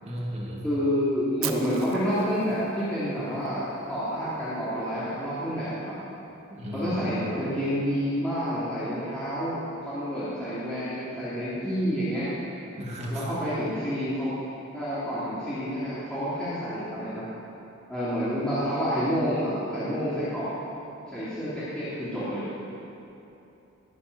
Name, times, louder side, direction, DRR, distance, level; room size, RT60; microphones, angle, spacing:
voice 1, 0.0-0.6 6.5-6.9 12.8-13.3, equal, 30° right, -4 dB, 2.8 m, -34 dB
voice 2, 0.6-5.9 6.7-12.3 13.1-14.3 14.7-17.3 17.9-20.5 21.1-22.5, equal, 5° left, -14 dB, 3.3 m, -29 dB
Fire, 1.4-3.5, right 10 dB, 80° right, 1.0 m, -38 dB
21.5 x 8.7 x 6.4 m, 2.9 s
head